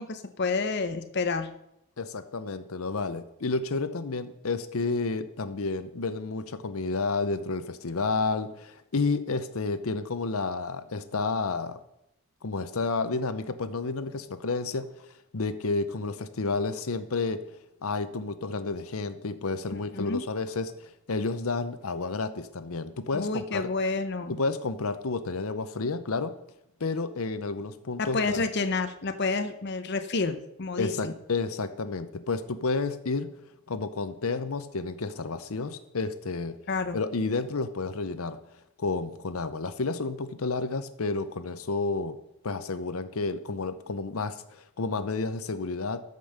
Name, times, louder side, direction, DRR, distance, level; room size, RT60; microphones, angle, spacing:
voice 1, 0.0-1.5 19.9-20.2 23.1-24.4 28.0-31.1 36.7-37.0, left 3 dB, 50° left, 9 dB, 0.7 m, -29 dB
voice 2, 2.0-11.8 12.4-14.9 15.3-17.4 17.8-23.7 24.3-26.3 26.8-28.4 30.8-33.3 33.7-36.5 36.9-38.4 38.8-42.2 42.4-46.0, left 3 dB, 80° left, 12 dB, 0.8 m, -31 dB
13.5 x 5.4 x 6.5 m, 0.81 s
head